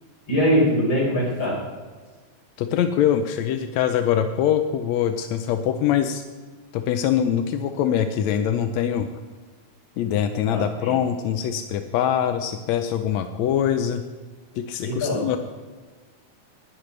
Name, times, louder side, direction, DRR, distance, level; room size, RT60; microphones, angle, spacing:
voice 1, 0.3-1.6 10.5-11.0 14.8-15.3, equal, 35° left, -3 dB, 5.2 m, -22 dB
voice 2, 2.6-6.2 6.7-9.1 10.0-14.0 14.6-15.4, left 9 dB, 75° left, 8 dB, 1.6 m, -23 dB
19.5 x 11.0 x 3.3 m, 1.4 s
omnidirectional pair, 3.8 m